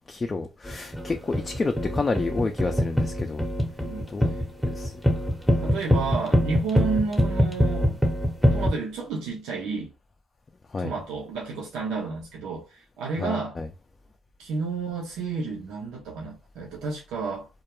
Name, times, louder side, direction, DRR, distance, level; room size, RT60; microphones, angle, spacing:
voice 1, 0.1-3.4 4.1-4.3 4.7-4.9 10.7-10.9 13.2-13.7, left 3 dB, 30° left, 0.3 m, -29 dB
sound 1, 0.6-8.7, equal, ahead, 0.6 m, -23 dB
voice 2, 3.8-4.3 5.6-8.0 8.5-9.9 10.8-13.6 14.4-17.5, right 4 dB, 90° right, 0.6 m, -31 dB
2.2 x 2.1 x 2.9 m
cardioid pair, 90°, 0 cm